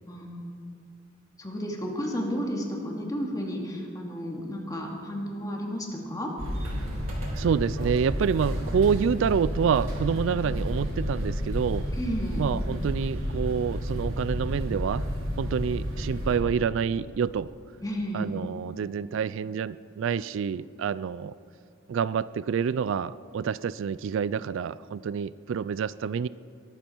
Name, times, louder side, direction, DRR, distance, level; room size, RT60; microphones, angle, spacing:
voice 1, 0.1-0.5 1.4-6.3 12.0-12.4 17.8-18.3, equal, 20° left, 0 dB, 2.3 m, -32 dB
sound 1, 6.4-16.4, equal, 90° right, 3.9 m, -31 dB
voice 2, 7.3-11.9 12.4-15.1 15.4-17.5 18.1-21.3 21.9-26.3, right 6 dB, 65° right, 18 dB, 0.3 m, -27 dB
22.0 x 12.5 x 4.6 m, 2.5 s
head